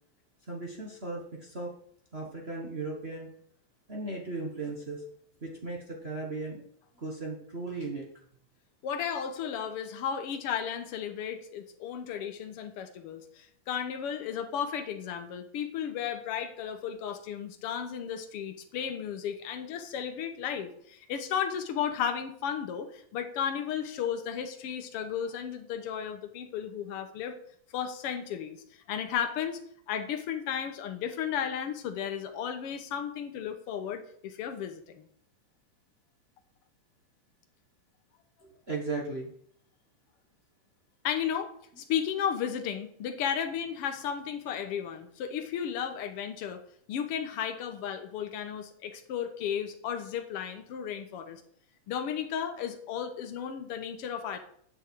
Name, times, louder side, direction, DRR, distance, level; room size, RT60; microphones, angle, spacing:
voice 1, 0.5-1.7 2.1-3.3 3.9-5.0 5.4-6.6 7.0-8.1 38.4-39.3, right 3 dB, 45° right, -1 dB, 0.8 m, -36 dB
voice 2, 8.8-27.4 27.7-29.6 29.9-35.1 41.0-46.6 46.9-51.4 51.9-54.4, left 8 dB, 60° left, 7 dB, 1.6 m, -34 dB
9.0 x 8.2 x 4.6 m, 0.63 s
omnidirectional pair, 3.6 m